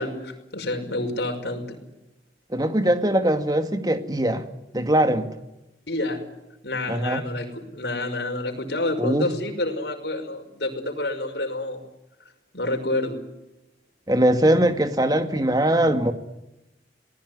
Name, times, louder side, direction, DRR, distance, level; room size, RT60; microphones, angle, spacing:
voice 1, 0.0-1.8 5.9-6.2 6.6-11.8 12.5-13.2, left 2 dB, 75° left, 4 dB, 5.7 m, -28 dB
voice 2, 2.5-4.5 4.7-5.3 6.9-7.2 9.0-9.3 14.1-16.1, right 1 dB, 20° right, 8 dB, 2.1 m, -21 dB
27.5 x 19.5 x 9.6 m, 0.96 s
head